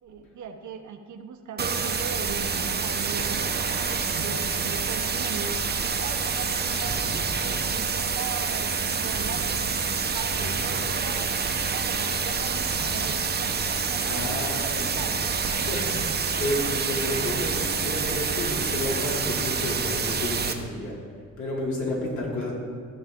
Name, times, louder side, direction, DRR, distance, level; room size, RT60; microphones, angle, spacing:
voice 1, 0.0-5.6 6.0-11.3 11.7-15.5, right 6 dB, 70° right, 5 dB, 1.0 m, -39 dB
sound 1, 1.6-20.5, right 5 dB, 35° right, 0.8 m, -27 dB
Thunder / Rain, 4.4-4.6 4.8-8.9 9.7-10.1 10.5-10.7 10.9-14.7, equal, 10° right, 1.1 m, -45 dB
voice 2, 10.4-10.8 14.0-21.0 21.4-22.5, left 1 dB, 70° left, -3 dB, 2.7 m, -31 dB
14.5 x 6.4 x 3.8 m, 2.1 s
cardioid pair, 90°, 30 cm